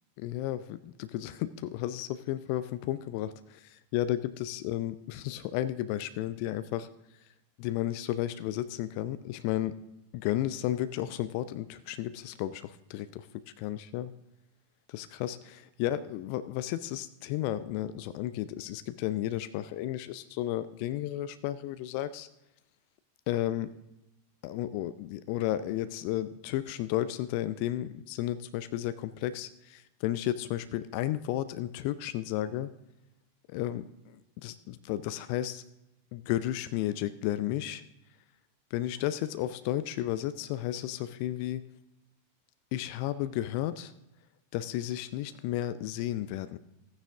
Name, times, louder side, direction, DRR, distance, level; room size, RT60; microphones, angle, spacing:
voice 1, 0.2-6.9 7.6-9.8 10.1-13.3 13.6-14.1 14.9-22.3 23.3-23.7 24.4-32.7 33.5-35.6 36.1-37.8 38.7-41.6 42.7-43.9 44.5-46.6, left 13 dB, 45° left, 13 dB, 0.4 m, -33 dB
14.5 x 9.5 x 3.6 m, 0.91 s
figure-of-eight pair, 90°, 0 cm